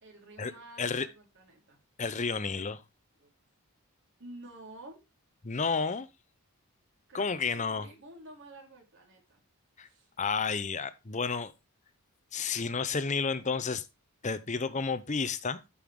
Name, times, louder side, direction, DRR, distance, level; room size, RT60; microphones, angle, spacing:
voice 1, 0.0-1.8 3.2-3.3 4.2-5.0 7.1-9.4 9.8-10.1, right 1 dB, 55° right, 3.9 m, -50 dB
voice 2, 2.0-2.8 5.4-6.1 7.1-7.9 9.8-9.9 10.2-11.5 12.3-13.8 14.2-15.6, left 5 dB, 30° left, 0.7 m, -31 dB
13.5 x 5.6 x 3.6 m
head